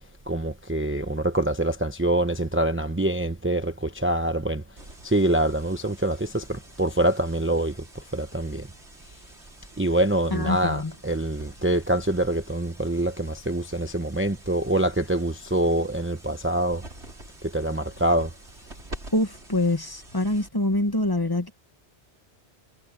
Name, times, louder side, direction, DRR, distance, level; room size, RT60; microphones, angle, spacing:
voice 1, 0.3-4.6 5.0-8.7 9.8-16.8 17.5-18.3, right 1 dB, 10° right, 0.9 m, -25 dB
sound 1, 4.8-20.8, right 1 dB, 85° right, 4.9 m, -47 dB
voice 2, 10.3-10.9 19.1-21.5, left 1 dB, 20° left, 1.4 m, -25 dB
omnidirectional pair, 1.1 m